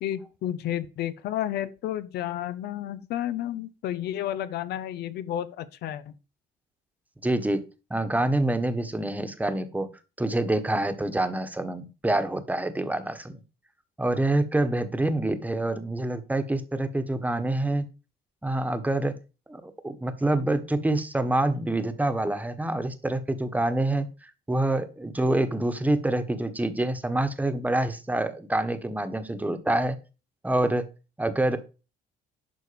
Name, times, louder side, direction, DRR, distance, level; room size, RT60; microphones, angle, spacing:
voice 1, 0.0-6.0, left 12 dB, 75° left, 1.0 m, -31 dB
voice 2, 7.2-7.6 7.9-9.9 10.2-13.4 14.0-17.9 18.4-19.1 19.5-30.0 30.4-30.9 31.2-31.6, right 1 dB, 10° right, 1.4 m, -26 dB
11.5 x 4.2 x 6.9 m
cardioid pair, 110°, 17 cm